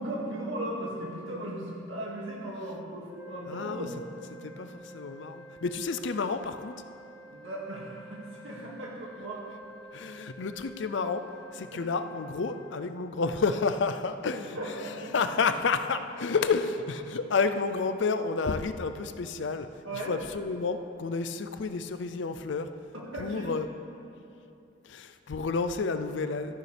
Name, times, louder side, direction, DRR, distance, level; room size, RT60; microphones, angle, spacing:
voice 1, 0.0-4.0 4.4-4.7 7.3-9.4 11.7-11.8 14.5-15.3 19.9-20.2 23.1-23.5, right 1 dB, 80° right, -3 dB, 2.1 m, -37 dB
sound 1, 3.0-12.7, right 1 dB, 45° left, 1.3 m, -50 dB
voice 2, 3.5-3.9 4.4-6.7 9.9-11.2 11.5-19.7 19.9-22.7 23.2-23.7 24.8-26.6, left 4 dB, 60° left, 10 dB, 0.5 m, -30 dB
13.0 x 10.5 x 3.4 m, 2.7 s
head